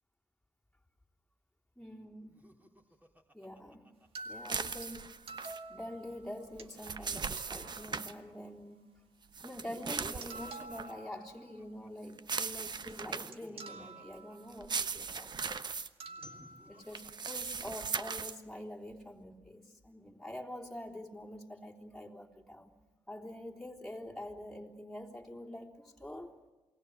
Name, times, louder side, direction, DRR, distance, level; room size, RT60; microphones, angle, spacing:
voice 1, 1.7-2.4 3.3-3.9 4.2-5.1 5.7-8.8 9.4-15.5 16.7-22.7 23.1-26.3, left 1 dB, 5° left, -2 dB, 3.5 m, -46 dB
Laughter, 2.3-4.8 6.1-8.5 9.4-11.9 12.7-15.2 16.0-17.9, equal, 15° right, 3.3 m, -57 dB
sound 1, 4.1-6.7 7.1-7.2 7.4-8.5 9.8-9.9 10.2-11.7 12.9-13.0 13.3-14.7 16.0-17.1, right 3 dB, 70° right, 2.0 m, -49 dB
sound 2, 4.5-5.6 6.6-8.1 9.3-10.9 12.2-13.5 14.5-15.9 16.9-18.4, right 5 dB, 45° right, 1.1 m, -38 dB
28.5 x 20.5 x 8.1 m, 1.1 s
cardioid pair, 60°, 10 cm